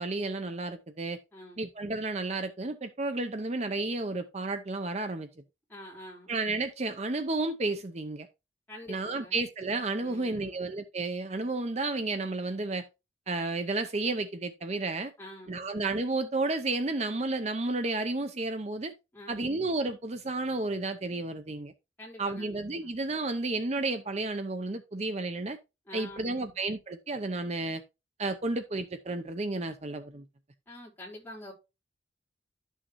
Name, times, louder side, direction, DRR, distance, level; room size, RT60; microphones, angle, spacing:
voice 1, 0.0-1.2 1.6-5.3 6.3-8.3 8.9-12.8 13.3-15.1 15.5-18.9 19.3-21.7 22.2-25.6 25.9-27.8 28.2-30.2, right 2 dB, 35° right, 0.6 m, -32 dB
voice 2, 1.3-1.6 5.7-6.3 8.7-9.4 10.0-10.7 15.2-15.7 19.1-19.6 22.0-22.9 25.9-26.6 30.7-31.5, left 1 dB, 10° left, 4.4 m, -47 dB
12.0 x 6.4 x 3.1 m
head